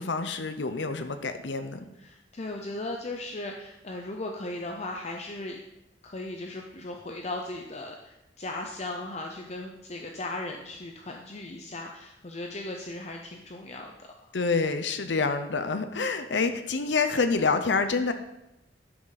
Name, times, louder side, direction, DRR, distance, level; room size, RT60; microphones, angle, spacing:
voice 1, 0.0-1.9 14.3-18.1, left 4 dB, 80° left, 8 dB, 0.7 m, -27 dB
voice 2, 1.9-5.6 6.0-14.1 16.3-16.5, left 2 dB, 40° left, 2 dB, 0.7 m, -37 dB
12.0 x 6.2 x 4.0 m, 0.90 s
head